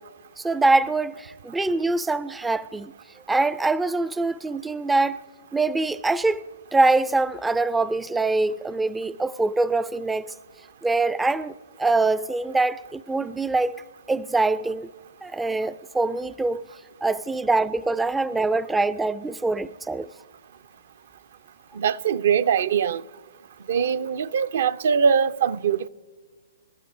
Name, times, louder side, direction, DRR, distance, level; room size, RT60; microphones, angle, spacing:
voice 1, 0.4-2.9 3.3-5.2 5.5-6.5 6.7-10.3 10.8-11.5 11.8-13.8 14.1-14.9 15.2-16.7 17.0-20.1, right 3 dB, 5° right, 0.3 m, -24 dB
voice 2, 21.8-23.0 23.7-25.9, right 7 dB, 60° right, 0.5 m, -22 dB
26.5 x 13.0 x 2.6 m
hypercardioid pair, 130°, 0 cm